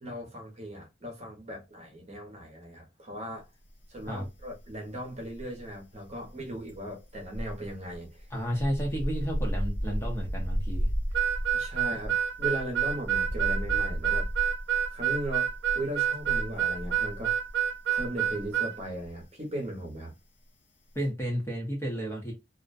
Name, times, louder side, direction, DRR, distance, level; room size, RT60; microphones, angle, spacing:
voice 1, 0.0-3.4 3.9-8.3 11.5-14.3 14.9-15.5 15.7-17.4 17.9-20.1, right 1 dB, 35° right, 0.8 m, -38 dB
sound 1, 3.9-4.7 5.0-18.5 18.8-19.1, equal, 75° left, 0.6 m, -34 dB
voice 2, 8.3-10.9 20.9-22.3, equal, 15° left, 0.7 m, -32 dB
Harmonica, 11.1-18.7, right 9 dB, 75° right, 0.3 m, -28 dB
2.4 x 2.1 x 2.5 m
head